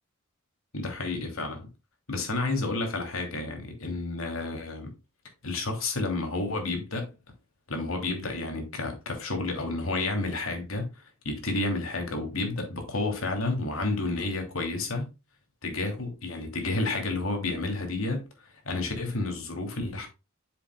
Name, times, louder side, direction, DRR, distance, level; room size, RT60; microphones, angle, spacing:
voice 1, 0.7-1.6 2.1-4.9 5.4-7.1 7.7-15.1 15.6-18.2 18.6-20.1, left 2 dB, 90° left, 2.8 m, -30 dB
7.7 x 7.4 x 2.2 m
head